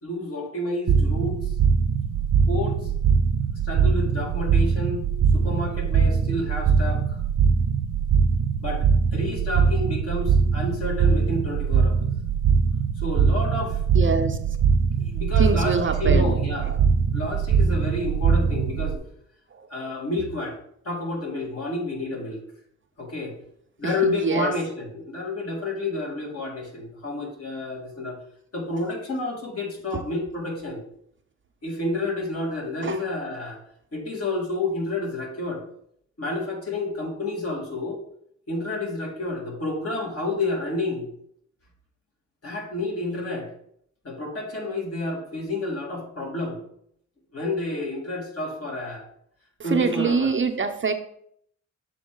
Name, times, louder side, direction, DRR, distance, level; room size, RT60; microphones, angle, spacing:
voice 1, 0.0-1.5 2.5-2.9 3.6-5.0 5.3-7.2 8.6-8.9 9.1-12.0 13.0-13.8 15.0-15.7 16.0-16.8 17.1-19.0 19.7-20.6 20.8-22.4 23.0-23.3 23.8-28.2 28.5-30.8 31.6-33.6 33.9-35.6 36.2-38.0 38.5-41.1 42.4-43.5 44.0-46.6 47.3-49.0 49.6-50.3, left 2 dB, 50° left, -1 dB, 2.4 m, -30 dB
sound 1, 0.9-19.0, right 6 dB, 80° right, 0.6 m, -22 dB
voice 2, 13.9-14.6 15.4-16.8 19.5-19.9 23.8-24.6 29.9-30.0 32.8-33.0 49.6-50.9, right 5 dB, 40° right, 6 dB, 0.7 m, -26 dB
7.0 x 4.5 x 3.8 m, 0.68 s
cardioid pair, 75°, 30 cm